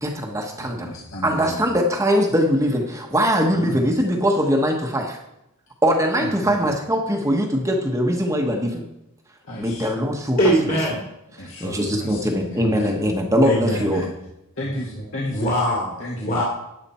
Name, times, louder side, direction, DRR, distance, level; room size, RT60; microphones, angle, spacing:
voice 1, 0.0-0.9 1.2-5.2 5.8-8.8 9.5-10.4 11.6-14.1, equal, 15° right, 2 dB, 1.1 m, -21 dB
voice 2, 0.6-1.6 3.5-3.8 6.2-6.7 9.4-9.9 11.4-13.0 13.6-14.1 14.6-15.6 16.0-16.4, equal, 60° left, -4 dB, 2.0 m, -33 dB
voice 3, 10.4-11.0 13.4-13.9 15.3-16.4, equal, 40° left, -4 dB, 2.4 m, -22 dB
12.5 x 8.8 x 4.3 m, 0.85 s
head